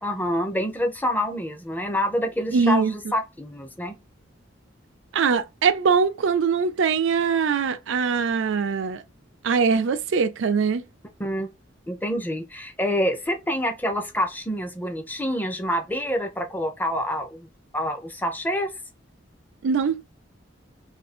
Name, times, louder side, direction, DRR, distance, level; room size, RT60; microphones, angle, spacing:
voice 1, 0.0-2.9 3.1-3.9 11.2-11.5 11.9-17.5 17.7-18.7, equal, 10° left, 0.6 m, -27 dB
voice 2, 2.5-2.9 5.1-9.0 9.4-10.8 19.6-20.0, right 5 dB, 80° right, 0.4 m, -22 dB
2.7 x 2.6 x 4.2 m
head